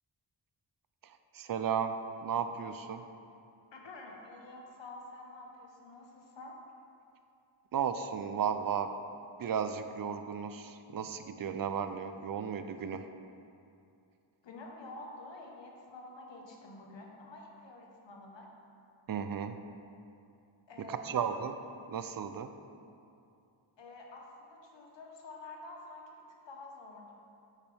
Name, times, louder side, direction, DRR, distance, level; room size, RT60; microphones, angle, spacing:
voice 1, 1.0-2.0 2.2-3.0 7.7-8.9 9.4-13.1 19.1-19.6 20.8-21.5 21.9-22.5, right 7 dB, 50° right, 9 dB, 0.5 m, -34 dB
voice 2, 3.7-6.6 14.4-18.5 20.7-21.4 23.8-26.1 26.4-27.1, left 2 dB, 65° left, 0 dB, 1.3 m, -49 dB
8.8 x 8.2 x 3.5 m, 2.6 s
wide cardioid pair, 170°, 47 cm